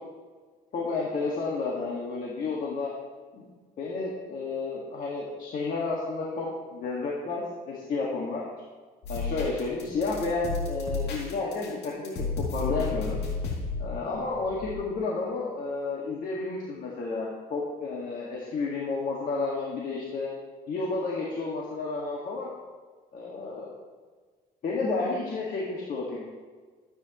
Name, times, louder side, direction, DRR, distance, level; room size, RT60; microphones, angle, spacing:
voice 1, 0.7-2.9 3.3-3.5 3.8-8.5 9.1-13.2 13.8-20.3 20.7-22.5 23.1-23.7 24.6-26.2, left 3 dB, 55° left, -4 dB, 1.9 m, -31 dB
sound 1, 9.0-14.8, left 4 dB, 80° left, 2.8 m, -33 dB
13.5 x 8.9 x 3.1 m, 1.5 s
cardioid pair, 110°, 17 cm